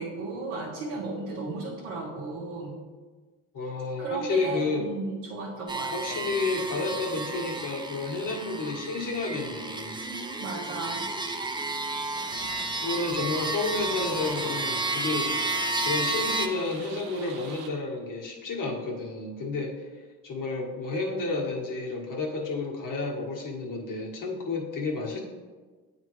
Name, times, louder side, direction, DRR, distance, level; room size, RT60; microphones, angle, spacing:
voice 1, 0.0-2.7 4.0-6.2 10.1-11.0, right 3 dB, 90° right, -6 dB, 1.2 m, -35 dB
voice 2, 3.5-4.9 5.9-10.0 12.8-15.3 15.8-19.8 20.2-25.2, left 3 dB, 50° left, -2 dB, 1.5 m, -31 dB
sound 1, 5.7-16.5, right 2 dB, 10° right, 0.6 m, -32 dB
sound 2, 12.1-17.7, right 5 dB, 65° right, 0.8 m, -43 dB
8.8 x 3.6 x 3.1 m, 1.4 s
supercardioid pair, 70°, 41 cm